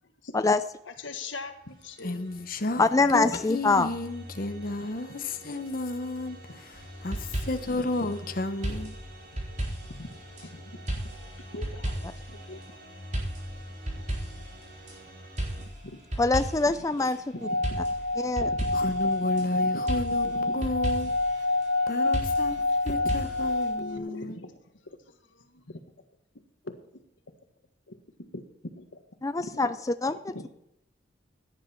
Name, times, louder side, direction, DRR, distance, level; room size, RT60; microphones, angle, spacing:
voice 1, 0.9-2.2 6.5-6.6 7.7-7.9 9.9-10.1 10.4-12.8 15.6-16.0 17.0-17.9 18.4-19.1 19.5-19.8 20.3-20.6 21.0-21.1 22.7-23.1 23.8-24.6 24.8-25.0 25.3-25.8 26.6-27.0 27.9-28.0 28.3-29.0 29.4-29.7 30.1-30.4, left 2 dB, 85° left, 1.7 m, -42 dB
sound 1, 1.3-15.7, equal, 60° right, 5.7 m, -46 dB
voice 2, 2.0-2.8 3.1-9.0 18.7-21.5 21.9-22.6 22.8-24.4, left 2 dB, 50° left, 0.9 m, -32 dB
voice 3, 2.8-3.9 16.2-17.2 18.2-18.5 29.2-29.7 30.0-30.5, left 3 dB, 15° left, 0.4 m, -24 dB
sound 2, 6.8-7.8 8.6-10.4 10.9-12.3 13.1-14.9 15.4-16.8 17.6-19.4 19.9-21.3 22.1-23.7, right 1 dB, 40° right, 4.1 m, -34 dB
Singing / Glass, 17.4-24.0, left 2 dB, 80° right, 0.9 m, -27 dB
16.5 x 10.0 x 4.5 m
head